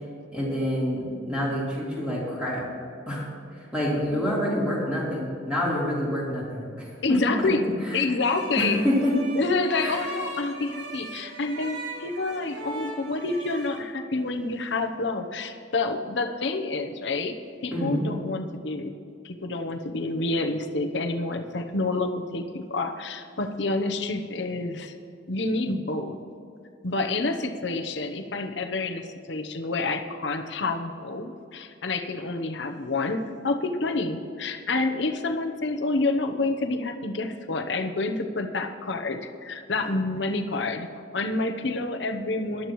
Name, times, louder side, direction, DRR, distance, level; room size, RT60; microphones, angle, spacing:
voice 1, 0.3-2.6 3.0-3.3 3.7-7.5 7.8-8.0 8.6-9.1 9.8-10.0 17.7-18.1, equal, 5° right, -7 dB, 3.5 m, -27 dB
voice 2, 7.0-7.6 7.9-8.8 9.4-17.4 17.6-18.9 19.2-24.9 25.3-26.2 26.8-42.7, left 3 dB, 65° left, 5 dB, 0.9 m, -28 dB
sound 1, 8.2-13.8, right 2 dB, 75° right, 2.3 m, -39 dB
18.0 x 12.0 x 3.1 m, 2.5 s
head